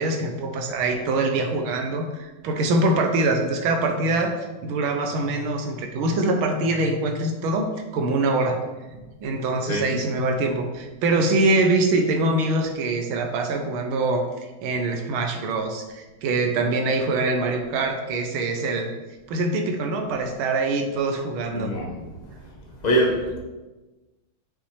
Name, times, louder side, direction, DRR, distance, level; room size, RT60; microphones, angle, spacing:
voice 1, 0.0-4.3 4.6-7.7 7.9-8.6 8.9-18.9 19.3-21.7, right 2 dB, 80° right, 4 dB, 1.6 m, -24 dB
voice 2, 21.5-22.3 22.8-23.4, right 1 dB, 35° left, -1 dB, 0.7 m, -24 dB
6.2 x 5.8 x 3.2 m, 1.1 s
omnidirectional pair, 2.3 m